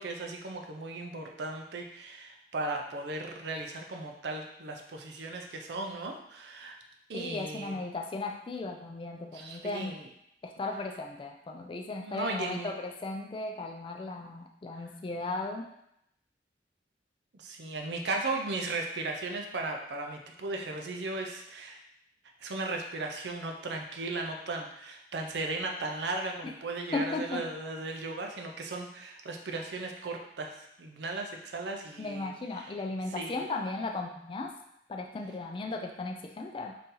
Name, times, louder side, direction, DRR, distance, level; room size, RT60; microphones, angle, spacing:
voice 1, 0.0-6.8 7.1-7.8 9.3-10.1 12.0-12.7 17.3-21.8 22.4-32.7 33.1-33.4, right 2 dB, 75° right, 2 dB, 0.5 m, -36 dB
voice 2, 7.1-9.9 10.4-15.7 26.9-27.4 32.0-34.5 34.9-36.8, left 3 dB, 30° left, 2 dB, 0.3 m, -36 dB
4.0 x 2.8 x 3.7 m, 0.77 s
head